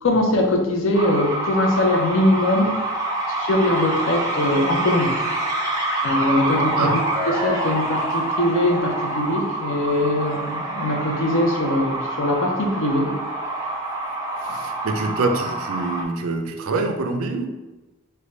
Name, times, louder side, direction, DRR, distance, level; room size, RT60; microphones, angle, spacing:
voice 1, 0.0-5.2 6.0-13.1, left 1 dB, 65° left, 2 dB, 0.6 m, -22 dB
sound 1, 0.9-16.0, right 1 dB, 15° right, 0.5 m, -26 dB
voice 2, 14.4-17.5, right 3 dB, 80° right, 5 dB, 0.4 m, -25 dB
3.3 x 2.2 x 3.8 m, 1.2 s
head